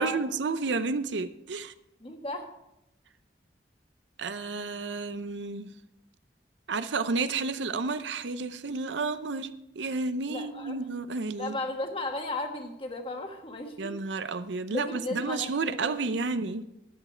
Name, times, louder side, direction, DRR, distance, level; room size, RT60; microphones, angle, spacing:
voice 1, 0.0-1.7 4.2-5.7 6.7-11.6 13.8-16.7, right 4 dB, 85° right, 0.6 m, -31 dB
voice 2, 2.0-2.5 10.3-10.8 11.4-13.9 14.7-15.9, left 2 dB, 30° left, 1.4 m, -35 dB
14.0 x 9.3 x 4.4 m
head